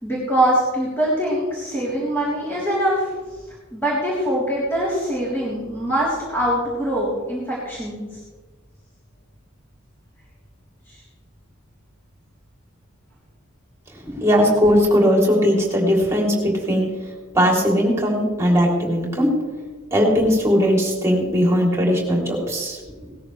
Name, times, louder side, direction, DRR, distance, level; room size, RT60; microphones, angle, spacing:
voice 1, 0.0-3.1 3.7-8.2 10.9-11.0, right 1 dB, 10° left, -8 dB, 3.5 m, -23 dB
voice 2, 14.2-16.9 17.3-19.3 19.9-22.8, equal, 15° right, -2 dB, 3.2 m, -18 dB
18.5 x 13.5 x 3.3 m, 1.3 s
head